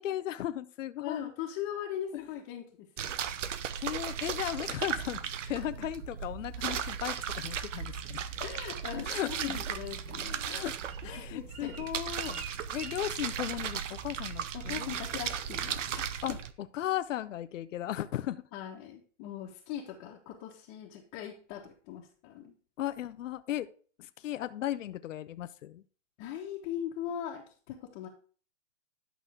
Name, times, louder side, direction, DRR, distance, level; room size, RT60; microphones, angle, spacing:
voice 1, 0.0-1.3 2.1-2.2 3.8-5.2 5.5-8.2 9.0-9.6 10.4-10.8 11.0-12.4 12.7-14.9 16.2-16.4 16.7-18.4 22.8-23.7 24.0-25.8, left 12 dB, 80° left, 12 dB, 0.6 m, -36 dB
voice 2, 1.0-2.6 3.0-3.1 5.4-5.9 8.4-10.6 11.2-11.8 14.5-16.0 18.5-22.5 26.2-28.1, left 10 dB, 35° left, -2 dB, 1.3 m, -40 dB
sound 1, 3.0-16.5, right 8 dB, 75° right, 0.8 m, -36 dB
Bird, 9.8-13.9 14.2-14.6 14.8-15.2 15.5-15.9 16.3-16.4, right 6 dB, 20° right, 0.5 m, -50 dB
11.0 x 6.1 x 3.6 m, 0.42 s
hypercardioid pair, 135°, 37 cm